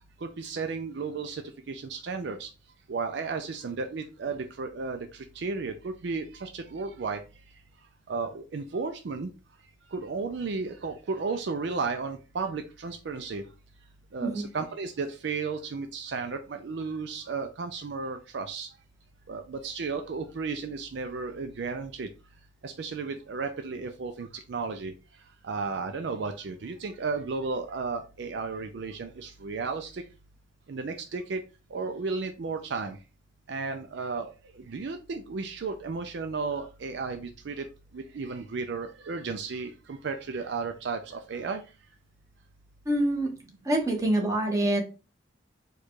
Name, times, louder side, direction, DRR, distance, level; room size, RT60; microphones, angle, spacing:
voice 1, 0.2-2.5 2.9-7.2 8.1-9.3 9.9-13.4 14.1-18.7 19.3-22.1 22.6-24.9 25.4-30.0 30.7-31.4 31.7-33.0 33.5-37.7 37.9-41.6, right 4 dB, 60° right, 7 dB, 0.4 m, -34 dB
voice 2, 42.9-43.3 43.6-44.8, right 1 dB, 15° right, 0 dB, 1.0 m, -25 dB
4.6 x 2.3 x 4.6 m, 0.32 s
head